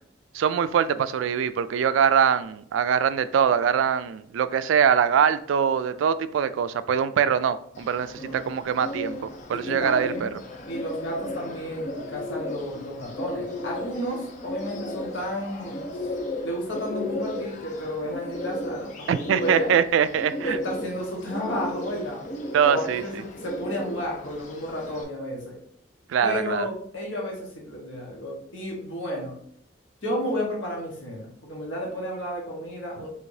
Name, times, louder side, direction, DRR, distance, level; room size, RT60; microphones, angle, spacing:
voice 1, 0.3-9.2 9.5-10.3 19.1-20.6 22.5-23.0 26.1-26.7, right 7 dB, 85° right, 14 dB, 0.3 m, -23 dB
Bird, 7.7-25.0, left 1 dB, 40° left, 0.6 m, -35 dB
voice 2, 8.2-8.5 9.5-10.3 10.7-16.1 16.4-19.7 20.4-22.2 22.6-25.6 26.2-29.4 30.0-33.1, equal, 80° left, -2 dB, 1.2 m, -32 dB
4.7 x 3.5 x 2.7 m, 0.66 s
head